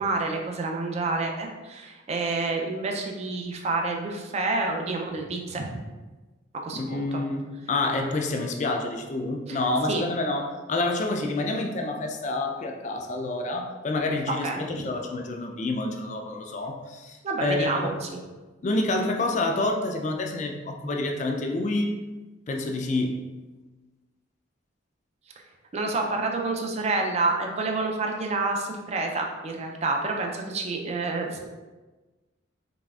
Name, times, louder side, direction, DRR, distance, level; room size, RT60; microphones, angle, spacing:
voice 1, 0.0-5.7 6.6-7.2 9.5-9.6 9.9-10.0 14.4-14.6 17.2-18.2 25.7-31.5, right 3 dB, 35° right, 2 dB, 0.4 m, -28 dB
voice 2, 6.7-18.0 18.6-21.9 22.5-23.2, left 2 dB, 35° left, 3 dB, 0.4 m, -28 dB
4.0 x 3.3 x 2.3 m, 1.2 s
head